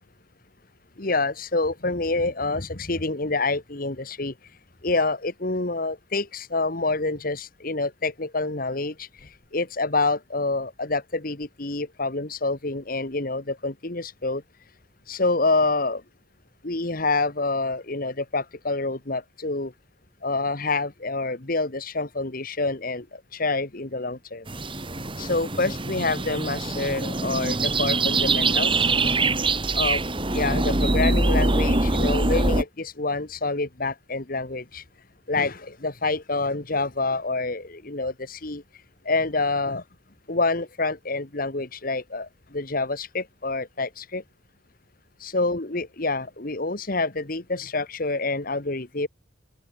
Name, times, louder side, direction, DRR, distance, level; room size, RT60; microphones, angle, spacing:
voice 1, 1.0-4.3 4.8-14.4 15.1-16.0 16.6-19.7 20.2-24.5 25.2-28.9 29.7-30.0 30.3-34.8 35.3-38.6 39.1-39.8 40.3-44.2 45.2-49.1, left 3 dB, 50° left, 1.8 m, -27 dB
sound 1, 24.5-32.6, right 2 dB, 25° right, 3.6 m, -23 dB
open air
head